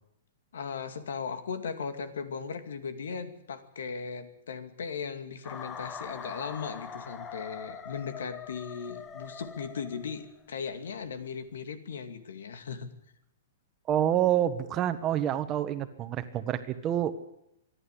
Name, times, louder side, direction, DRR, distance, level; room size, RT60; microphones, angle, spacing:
voice 1, 0.5-12.9, left 6 dB, 85° left, 9 dB, 2.4 m, -37 dB
sound 1, 5.4-10.4, left 6 dB, 15° left, 1.1 m, -43 dB
voice 2, 13.9-17.2, right 11 dB, 25° right, 10 dB, 1.4 m, -27 dB
25.5 x 11.0 x 9.9 m, 0.81 s
hypercardioid pair, 160°, 0 cm